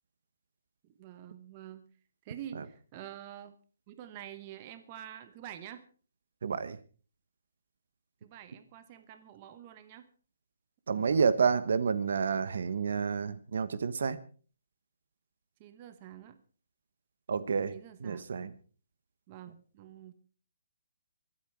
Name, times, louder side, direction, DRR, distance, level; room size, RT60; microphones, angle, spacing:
voice 1, 0.8-1.9 2.2-3.6 3.9-5.8 8.2-10.1 10.9-11.3 15.6-16.4 17.7-18.3 19.3-20.1, right 11 dB, 20° right, 10 dB, 1.0 m, -47 dB
voice 2, 6.4-6.8 10.9-14.2 17.3-17.7 18.0-18.5, right 5 dB, 55° right, 15 dB, 1.1 m, -29 dB
25.0 x 8.9 x 4.6 m, 0.40 s
hypercardioid pair, 175°, 0 cm